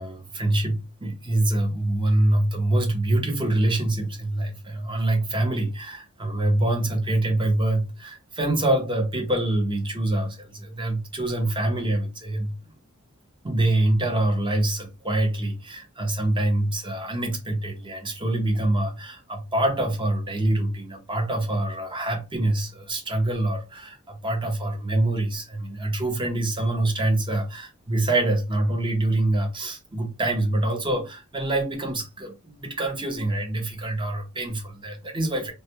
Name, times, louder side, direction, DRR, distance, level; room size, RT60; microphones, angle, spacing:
voice 1, 0.0-12.5 13.4-35.5, right 1 dB, 25° right, 0.7 m, -25 dB
2.3 x 2.1 x 2.9 m
head